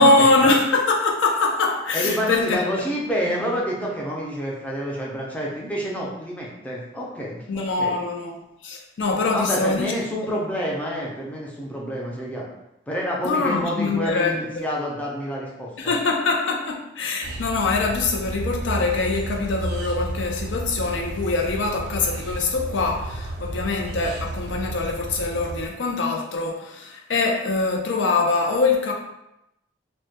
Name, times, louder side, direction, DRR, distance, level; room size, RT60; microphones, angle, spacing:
voice 1, 0.0-2.6 7.5-10.0 10.3-10.4 13.2-14.3 15.8-28.9, left 3 dB, 90° left, 1 dB, 0.4 m, -23 dB
voice 2, 1.9-7.9 9.3-12.5 12.9-15.9, equal, 10° left, -4 dB, 0.4 m, -28 dB
sound 1, 17.2-25.7, right 2 dB, 65° right, 0.3 m, -32 dB
2.1 x 2.1 x 2.7 m, 0.86 s
head